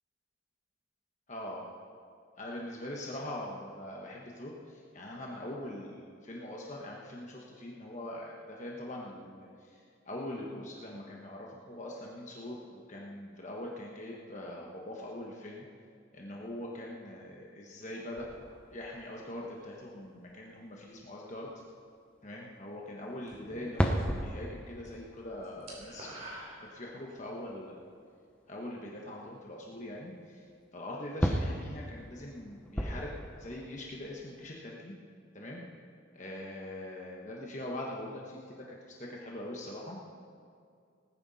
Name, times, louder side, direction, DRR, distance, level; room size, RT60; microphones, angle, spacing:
voice 1, 1.3-1.7 2.4-15.6 16.1-18.3 18.7-21.5 22.2-27.8 28.5-30.4 30.7-34.9 35.3-35.6 36.1-40.0, left 1 dB, 35° left, -2 dB, 1.3 m, -42 dB
sound 1, 18.2-19.4 20.2-20.3 21.1-21.2 21.5-21.6 23.4-27.7 29.3-29.4 29.8-29.9 31.2-34.5, equal, 5° left, 0.8 m, -36 dB
sound 2, 23.3-24.3 24.6-24.9 25.2-27.3, right 1 dB, 35° right, 3.5 m, -48 dB
19.5 x 9.7 x 4.2 m, 2.3 s
head